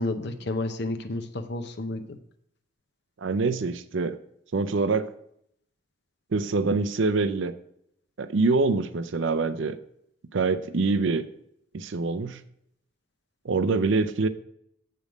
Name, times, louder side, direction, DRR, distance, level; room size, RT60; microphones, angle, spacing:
voice 1, 0.0-2.2, left 2 dB, 55° left, 8 dB, 0.7 m, -31 dB
voice 2, 3.2-4.2 4.5-5.1 6.3-7.5 8.2-9.8 10.3-11.3 11.7-12.4 13.4-14.3, right 3 dB, 60° right, 12 dB, 0.5 m, -25 dB
7.7 x 5.2 x 4.9 m, 0.72 s
head